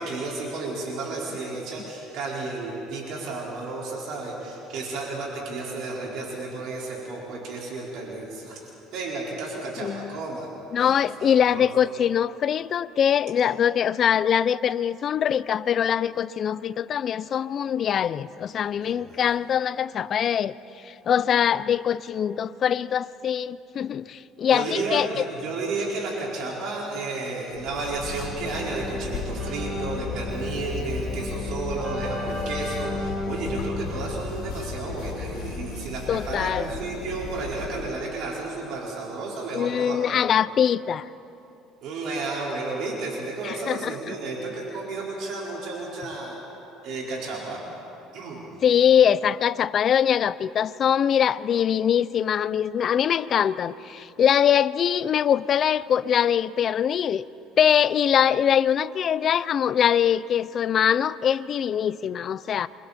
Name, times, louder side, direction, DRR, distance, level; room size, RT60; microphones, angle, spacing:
voice 1, 0.0-8.6 8.9-10.5 10.8-10.9 11.2-11.7 18.8-19.0 24.5-40.0 41.8-46.4 46.8-47.6 48.1-48.4, right 3 dB, 65° right, -4 dB, 4.8 m, -32 dB
voice 2, 9.8-10.2 10.7-20.5 20.8-25.2 36.1-36.6 39.5-41.1 43.4-44.1 48.6-57.3 57.6-62.7, left 9 dB, 40° left, 16 dB, 0.5 m, -23 dB
sound 1, 27.5-38.1, left 5 dB, 70° left, 4.2 m, -35 dB
Keyboard (musical), 28.0-35.3, left 1 dB, 20° right, 5.2 m, -35 dB
29.5 x 24.5 x 4.3 m, 2.9 s
cardioid pair, 125°, 0 cm